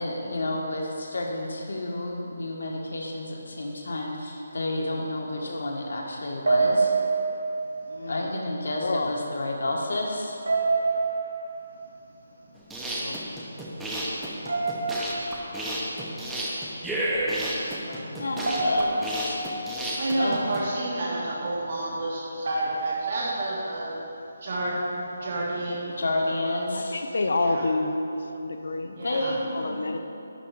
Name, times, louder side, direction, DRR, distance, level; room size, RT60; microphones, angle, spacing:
voice 1, 0.0-7.0 8.1-10.4 17.7-19.4 20.2-20.4 26.0-27.0 28.8-30.0, left 1 dB, 80° left, -1 dB, 1.5 m, -30 dB
voice 2, 5.3-5.7 7.9-8.3 8.7-9.1 12.9-13.2 26.7-28.0 28.3-28.9 29.5-30.0, left 3 dB, 60° left, 6 dB, 0.6 m, -29 dB
sound 1, 6.5-7.9 10.5-11.9 14.5-15.7 18.5-19.7 22.5-23.4, right 3 dB, 80° right, 2.0 m, -26 dB
sound 2, 12.6-20.6, right 1 dB, 5° right, 0.7 m, -31 dB
voice 3, 19.9-23.9 24.4-25.8 26.3-26.7 27.4-27.6 28.9-29.3, right 2 dB, 40° right, -5 dB, 1.4 m, -30 dB
11.0 x 3.8 x 6.8 m, 2.8 s
hypercardioid pair, 175°, 0 cm